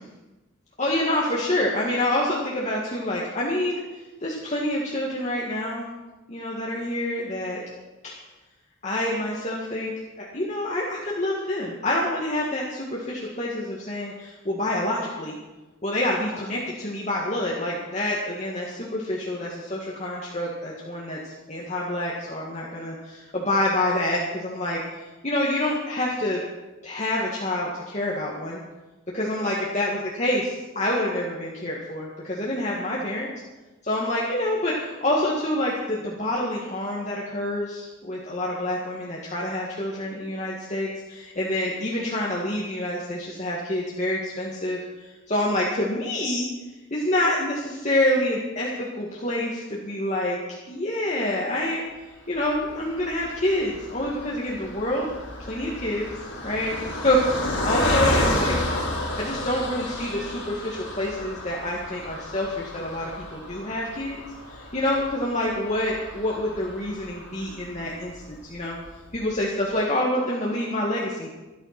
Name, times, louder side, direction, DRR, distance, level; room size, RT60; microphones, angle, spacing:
voice 1, 0.8-3.8 4.2-5.9 6.3-7.6 8.0-8.1 8.8-15.4 15.8-24.8 25.2-26.4 26.8-28.6 29.1-33.3 33.8-46.5 46.9-50.4 50.7-51.8 52.3-55.1 55.5-56.0 56.4-56.8 57.0-58.8 59.0-64.2 64.5-68.8 69.1-71.3, left 1 dB, 35° left, -4 dB, 1.8 m, -27 dB
Car passing by, 52.5-68.0 68.5-68.6 68.9-69.1, left 1 dB, 70° left, 4.6 m, -31 dB
13.0 x 12.5 x 5.9 m, 1.1 s
head